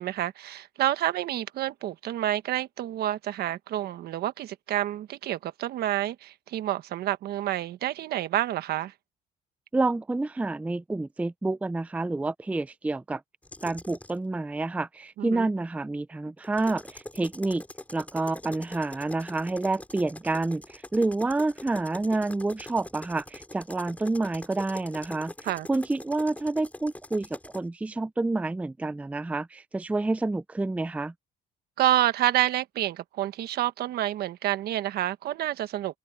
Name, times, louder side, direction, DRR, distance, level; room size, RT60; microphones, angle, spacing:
voice 1, 0.0-8.9 15.2-15.5 25.4-25.7 31.8-36.0, right 13 dB, 70° right, 1.3 m, -28 dB
voice 2, 9.7-13.2 13.6-17.6 17.9-25.3 25.7-31.1, right 2 dB, 10° right, 0.4 m, -28 dB
sound 1, 13.4-14.2 16.4-27.6, left 1 dB, 10° left, 5.2 m, -44 dB
cardioid pair, 110°, 17 cm